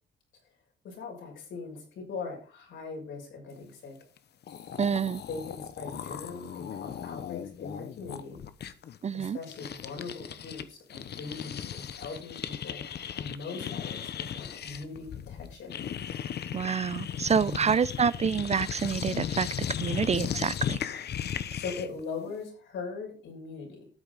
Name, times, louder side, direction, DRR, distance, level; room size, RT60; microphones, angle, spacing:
voice 1, 0.8-4.0 5.3-8.4 9.1-12.8 13.2-15.8 17.4-17.7 21.5-23.9, left 4 dB, 75° left, 6.8 m, -40 dB
sound 1, 4.2-4.3 4.4-10.6 10.9-22.0, left 9 dB, 55° left, 1.0 m, -36 dB
voice 2, 4.8-5.2 9.0-9.4 16.5-19.5 19.8-20.8, right 6 dB, 35° right, 0.5 m, -27 dB
13.0 x 8.7 x 4.1 m
cardioid pair, 90°, 20 cm